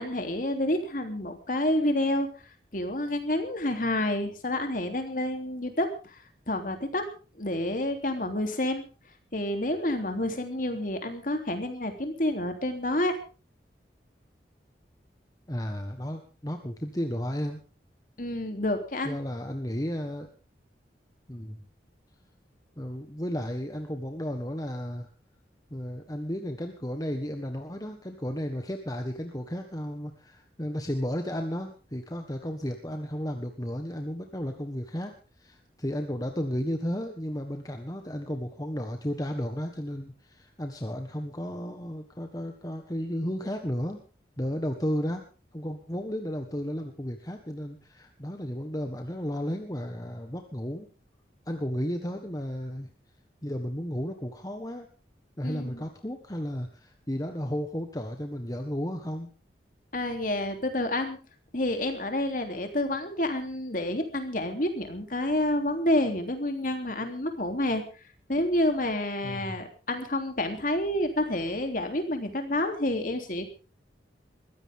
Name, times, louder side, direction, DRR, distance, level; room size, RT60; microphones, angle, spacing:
voice 1, 0.0-2.3 2.7-6.2 6.5-7.0 7.4-8.8 9.3-13.1 18.2-19.2 55.4-55.8 59.9-61.2 61.5-67.8 68.3-73.5, left 1 dB, 50° left, 5 dB, 3.3 m, -29 dB
voice 2, 15.5-17.6 19.0-20.3 21.3-21.6 22.8-25.1 25.7-44.0 44.4-45.2 45.5-50.9 51.5-52.9 53.4-54.9 55.4-59.3 69.2-69.6, equal, 20° left, 5 dB, 1.5 m, -33 dB
22.0 x 15.5 x 3.7 m, 0.35 s
head